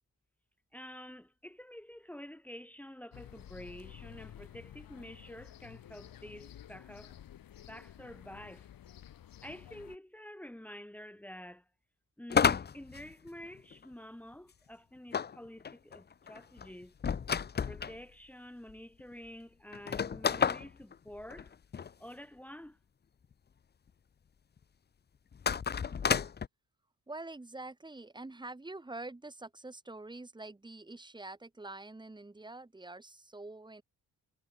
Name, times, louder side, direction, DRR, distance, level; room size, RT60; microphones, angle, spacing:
voice 1, 0.7-7.2 7.7-8.7 9.4-11.7 12.2-16.9 17.6-21.5 22.0-22.8, left 1 dB, 5° left, 3.1 m, -49 dB
sound 1, 3.1-10.0, left 11 dB, 85° left, 4.8 m, -52 dB
sound 2, 12.3-13.8 15.1-18.0 18.7-18.8 19.0-19.1 19.7-21.9 25.3-26.5, left 7 dB, 30° left, 0.8 m, -31 dB
voice 2, 27.1-33.8, right 2 dB, 15° right, 4.2 m, -46 dB
wide cardioid pair, 165°, 34 cm